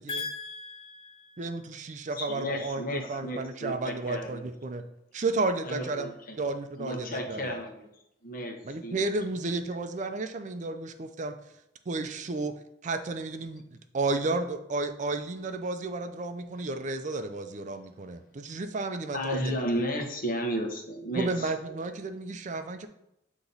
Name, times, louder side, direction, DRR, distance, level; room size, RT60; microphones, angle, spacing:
voice 1, 0.1-1.6, left 4 dB, 30° left, 0.3 m, -39 dB
voice 2, 1.4-4.9 5.1-6.1 6.4-7.6 8.6-11.3 11.9-12.5 12.8-19.5 21.2-22.9, right 3 dB, 45° right, 0.5 m, -32 dB
voice 3, 2.1-4.4 5.6-6.4 6.8-7.8 8.2-9.0 19.1-21.8, equal, 50° left, 1.0 m, -33 dB
8.0 x 3.0 x 4.0 m
head